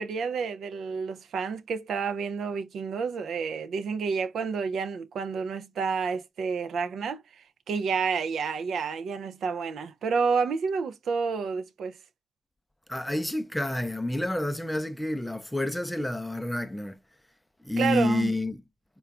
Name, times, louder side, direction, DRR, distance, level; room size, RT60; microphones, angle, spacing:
voice 1, 0.0-7.2 7.7-12.0 17.8-18.3, right 5 dB, 60° right, 0.4 m, -29 dB
voice 2, 12.9-17.0 17.6-18.6, left 1 dB, 5° left, 0.5 m, -29 dB
3.6 x 2.3 x 3.4 m
cardioid pair, 90°, 0 cm